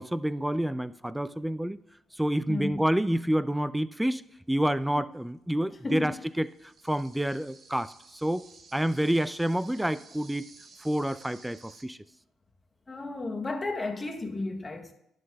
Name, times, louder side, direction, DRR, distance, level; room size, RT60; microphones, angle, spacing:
voice 1, 0.0-1.8 2.2-6.5 6.8-8.4 8.7-10.5 10.8-12.0, right 1 dB, 5° right, 0.3 m, -28 dB
voice 2, 2.5-2.8 5.8-6.2 12.9-14.9, left 2 dB, 25° left, 0.9 m, -33 dB
sound 1, 5.9-11.8, right 4 dB, 45° right, 0.8 m, -54 dB
11.0 x 7.6 x 2.3 m
supercardioid pair, 70°, 0 cm